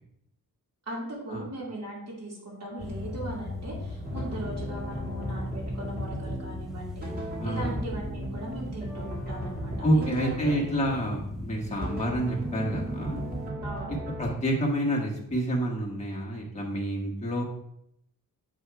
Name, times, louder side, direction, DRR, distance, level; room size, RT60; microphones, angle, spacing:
voice 1, 0.9-10.2 10.4-10.6 13.6-13.9, right 1 dB, 45° right, -4 dB, 2.2 m, -38 dB
sound 1, 2.8-13.5, left 2 dB, ahead, 0.9 m, -39 dB
sound 2, 4.0-11.0 11.8-14.3, right 1 dB, 25° right, 1.9 m, -36 dB
voice 2, 7.4-7.7 9.8-13.2 14.2-17.4, right 1 dB, 20° left, -3 dB, 1.3 m, -28 dB
7.9 x 2.7 x 4.6 m, 0.77 s
wide cardioid pair, 95°, 34 cm